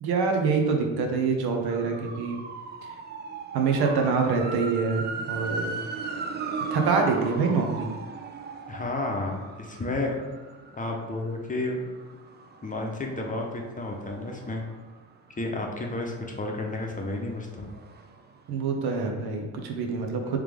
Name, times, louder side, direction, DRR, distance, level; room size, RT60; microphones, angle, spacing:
voice 1, 0.0-2.4 2.8-2.9 3.5-5.7 6.7-7.9 18.5-20.4, right 4 dB, 70° right, 3 dB, 0.8 m, -25 dB
sound 1, 1.7-15.4 15.8-18.4 18.6-18.7, right 4 dB, 25° right, 0.4 m, -38 dB
voice 2, 8.7-10.1 10.8-11.8 12.6-14.6 15.4-17.7, left 2 dB, 20° left, 1 dB, 0.7 m, -31 dB
3.4 x 3.3 x 3.4 m, 1.3 s
supercardioid pair, 65°, 39 cm